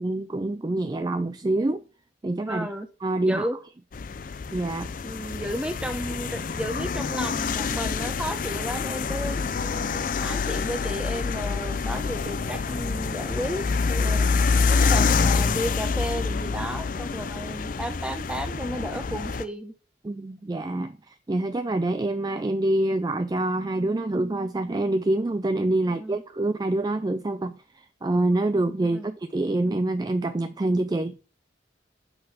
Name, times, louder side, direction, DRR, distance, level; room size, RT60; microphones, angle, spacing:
voice 1, 0.0-1.8 2.2-2.7 3.0-3.5 4.5-4.9 14.0-14.6 20.0-31.2, right 2 dB, 20° right, 0.3 m, -26 dB
voice 2, 2.5-2.9 3.2-3.6 5.0-14.3 14.7-19.7 25.9-26.2 28.8-29.2, equal, 5° right, 0.9 m, -33 dB
sound 1, 3.9-19.4, left 4 dB, 45° left, 0.4 m, -26 dB
8.7 x 4.1 x 5.7 m
head